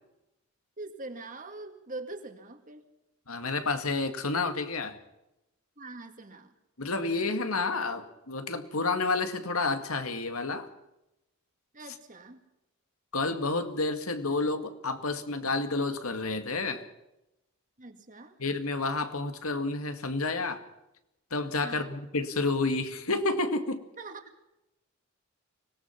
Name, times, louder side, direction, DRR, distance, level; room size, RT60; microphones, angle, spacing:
voice 1, 0.8-2.8 5.8-6.5 11.7-12.4 17.8-18.4 21.6-22.0 24.0-24.3, right 2 dB, 40° right, 7 dB, 2.2 m, -43 dB
voice 2, 3.3-5.0 6.8-10.7 13.1-16.9 18.4-20.6 21.3-23.8, left 3 dB, 85° left, 8 dB, 2.2 m, -30 dB
25.0 x 18.5 x 6.0 m, 0.91 s
head